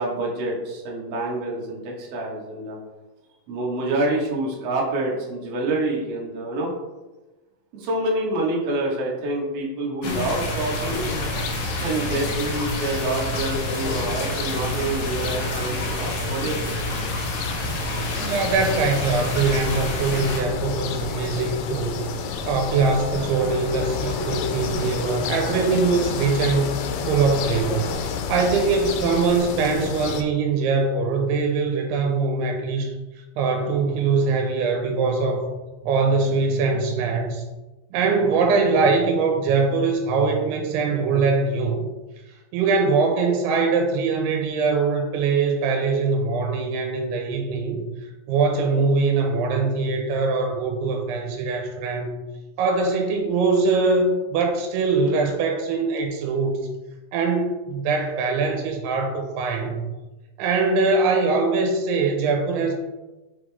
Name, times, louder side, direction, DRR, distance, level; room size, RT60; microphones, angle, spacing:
voice 1, 0.0-2.8 3.5-6.7 7.7-11.0 11.8-16.7, right 2 dB, 60° right, -3 dB, 1.6 m, -27 dB
sound 1, 10.0-20.4, left 1 dB, 70° left, 1.8 m, -29 dB
sound 2, 10.7-30.2, left 5 dB, 85° left, 2.7 m, -30 dB
voice 2, 18.2-22.1 22.4-27.9 28.3-32.9 33.4-35.5 35.8-37.4 37.9-41.8 42.5-47.8 48.3-52.2 52.6-56.7 57.1-59.8 60.4-62.7, right 4 dB, 90° right, 3 dB, 2.7 m, -22 dB
5.8 x 5.0 x 3.4 m, 1.1 s
omnidirectional pair, 4.6 m